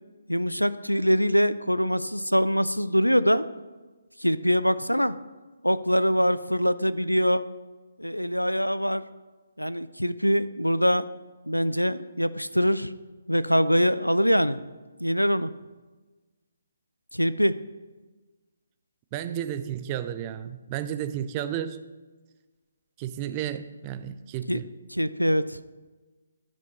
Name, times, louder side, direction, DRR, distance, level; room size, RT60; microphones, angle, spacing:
voice 1, 0.3-3.5 4.2-5.2 5.6-7.5 8.0-9.0 9.6-11.1 11.5-12.9 13.3-14.6 15.0-15.5 17.1-17.6 24.5-24.6 24.9-25.6, equal, 90° left, 15 dB, 0.4 m, -23 dB
voice 2, 19.1-21.8 23.0-24.7, right 10 dB, 25° right, 11 dB, 0.4 m, -32 dB
11.5 x 5.0 x 4.1 m, 1.3 s
figure-of-eight pair, 140°, 0 cm